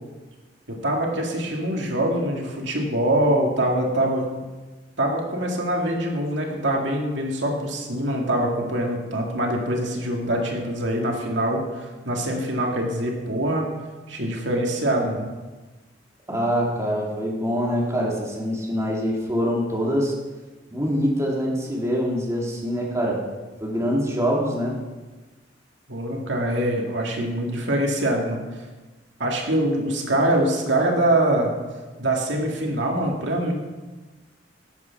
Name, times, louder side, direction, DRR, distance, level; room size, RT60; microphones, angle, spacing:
voice 1, 0.7-4.3 5.0-13.7 14.1-15.3 25.9-28.6 29.2-31.5 32.0-33.5, right 1 dB, 80° right, 0 dB, 2.2 m, -24 dB
voice 2, 16.3-20.1 20.7-23.2 23.6-24.7, equal, 15° right, -3 dB, 2.4 m, -24 dB
13.5 x 8.3 x 5.8 m, 1.2 s
head